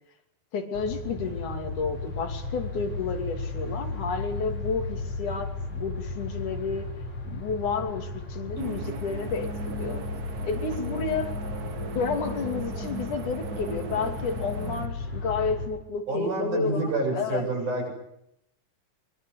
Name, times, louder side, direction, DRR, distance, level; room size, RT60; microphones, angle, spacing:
voice 1, 0.5-6.9 7.2-10.0 10.4-11.3 11.9-17.5, left 5 dB, 85° left, 5 dB, 4.3 m, -31 dB
sound 1, 0.7-15.7, left 2 dB, 65° left, 6.7 m, -35 dB
sound 2, 8.6-14.9, right 6 dB, 65° right, 0.9 m, -38 dB
voice 2, 16.1-17.9, right 3 dB, 90° right, 1 dB, 9.6 m, -28 dB
23.5 x 22.5 x 8.3 m, 0.78 s
omnidirectional pair, 3.4 m